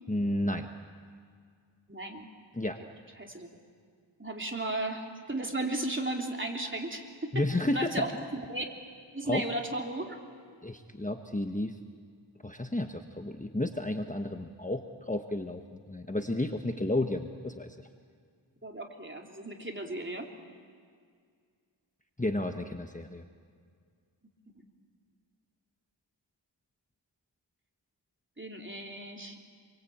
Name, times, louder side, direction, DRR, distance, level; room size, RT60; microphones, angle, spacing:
voice 1, 0.1-0.7 2.5-2.8 7.3-7.9 9.3-9.4 10.6-11.7 12.4-17.8 22.2-23.2, left 1 dB, 15° left, 5 dB, 1.2 m, -32 dB
voice 2, 1.9-2.3 3.2-3.5 4.2-8.1 8.5-8.7 9.1-10.2 18.6-20.3 24.6-24.7 28.4-29.4, right 2 dB, 25° right, 1 dB, 3.4 m, -35 dB
27.5 x 23.0 x 8.7 m, 2.1 s
wide cardioid pair, 60°, 46 cm